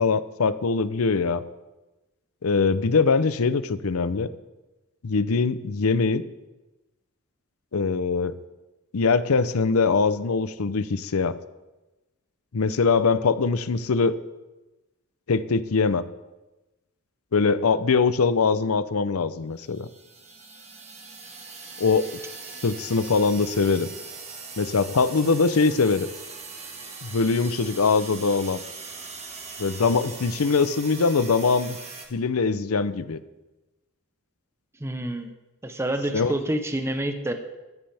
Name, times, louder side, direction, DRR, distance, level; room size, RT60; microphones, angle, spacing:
voice 1, 0.0-1.4 2.4-4.3 5.0-6.2 7.7-8.3 8.9-11.4 12.5-14.2 15.3-16.0 17.3-19.9 21.8-22.1 22.6-23.9 24.6-26.1 27.0-28.6 29.6-31.8 32.1-33.2 36.1-36.3, left 4 dB, 70° left, 14 dB, 0.6 m, -22 dB
sound 1, 19.6-32.1, right 4 dB, 30° right, 1.6 m, -41 dB
voice 2, 34.8-35.3 35.6-37.3, right 1 dB, 10° right, 7 dB, 0.8 m, -28 dB
14.5 x 13.0 x 3.4 m, 1.1 s
head